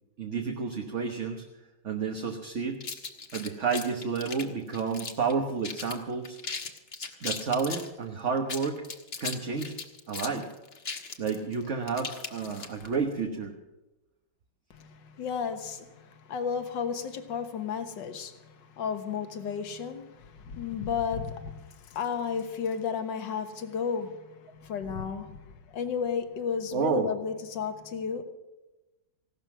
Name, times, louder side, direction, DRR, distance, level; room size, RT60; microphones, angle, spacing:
voice 1, 0.2-1.4 1.8-2.8 3.3-6.4 7.2-8.8 9.2-9.8 10.1-10.5 11.2-13.5 26.7-27.1, right 5 dB, 45° right, 1.3 m, -30 dB
sound 1, 2.8-5.3 5.6-6.0 6.2-7.9 8.4-13.0, left 4 dB, 35° left, 1.3 m, -38 dB
voice 2, 14.7-28.2, left 6 dB, 70° left, 1.9 m, -33 dB
16.5 x 12.5 x 6.1 m
omnidirectional pair, 2.1 m